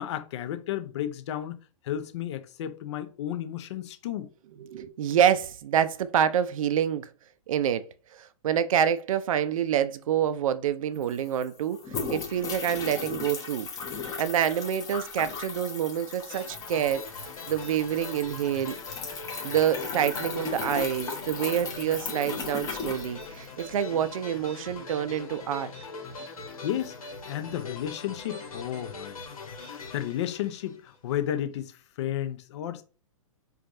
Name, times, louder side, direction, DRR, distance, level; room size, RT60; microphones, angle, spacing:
voice 1, 0.0-4.3 26.6-32.8, left 11 dB, 55° left, 0.6 m, -33 dB
voice 2, 4.6-7.1 7.5-11.8 12.1-13.7 14.2-18.7 19.1-25.7, right 9 dB, 70° right, 0.4 m, -27 dB
sound 1, 10.7-10.8 11.0-23.7, left 5 dB, 20° left, 0.8 m, -37 dB
sound 2, 16.3-31.1, left 3 dB, 90° left, 1.1 m, -42 dB
4.6 x 2.4 x 2.6 m
hypercardioid pair, 130°, 18 cm